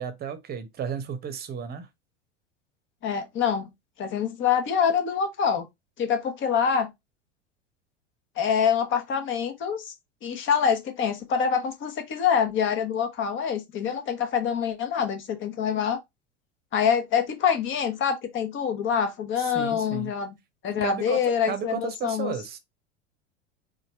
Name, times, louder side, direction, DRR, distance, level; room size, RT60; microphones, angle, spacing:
voice 1, 0.0-1.9 19.4-20.1 20.8-21.2 21.4-22.6, right 7 dB, 25° right, 0.9 m, -33 dB
voice 2, 3.0-3.7 4.0-5.7 6.0-6.9 8.4-9.9 10.2-16.0 16.7-20.3 20.6-22.3, left 7 dB, 35° left, 1.1 m, -25 dB
4.2 x 2.6 x 4.0 m
figure-of-eight pair, 80°, 35 cm